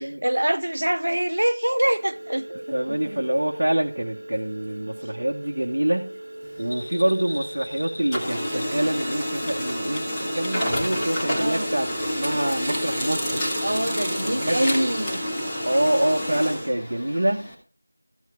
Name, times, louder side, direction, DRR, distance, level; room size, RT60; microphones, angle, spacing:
voice 1, 0.0-3.2 11.3-11.7 13.6-15.3, right 1 dB, 60° right, 0.6 m, -25 dB
sound 1, 1.9-13.6, right 1 dB, 30° right, 2.1 m, -40 dB
voice 2, 2.7-6.1 6.6-11.9 12.2-13.4 14.2-14.9 15.6-17.5, right 1 dB, 45° right, 0.9 m, -26 dB
Printer, 6.4-7.7 8.0-17.5, equal, 5° left, 0.9 m, -28 dB
Bell, 6.6-10.7 11.0-11.1, equal, 35° left, 4.5 m, -41 dB
13.5 x 6.3 x 3.4 m
figure-of-eight pair, 175°, 0 cm